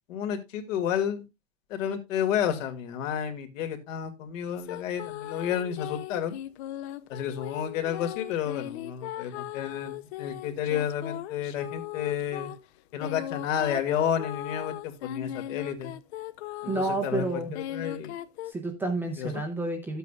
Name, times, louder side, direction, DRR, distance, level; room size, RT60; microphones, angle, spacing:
voice 1, 0.1-1.2 1.7-6.3 7.1-12.5 12.9-15.9 16.6-18.1 19.2-19.3, left 9 dB, 75° left, 6 dB, 2.4 m, -31 dB
sound 1, 4.6-17.1 17.5-18.5, left 13 dB, 55° left, 0.6 m, -38 dB
voice 2, 16.7-17.5 18.5-20.0, right 2 dB, 5° right, 3 dB, 0.5 m, -30 dB
12.5 x 8.1 x 2.3 m, 0.23 s
supercardioid pair, 165°, 39 cm